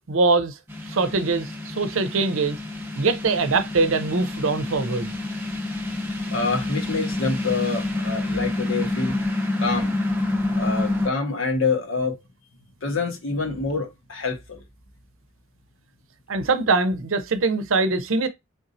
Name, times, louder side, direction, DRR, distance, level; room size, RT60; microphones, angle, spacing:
voice 1, 0.1-0.5 0.9-2.6 3.0-5.1 16.3-18.3, right 3 dB, 80° right, 0.6 m, -22 dB
sound 1, 0.7-11.1, left 2 dB, 10° right, 0.7 m, -28 dB
voice 2, 6.3-9.2 9.6-10.0 10.5-12.2 12.8-14.6, left 4 dB, 75° left, 1.3 m, -26 dB
4.1 x 3.6 x 2.6 m
head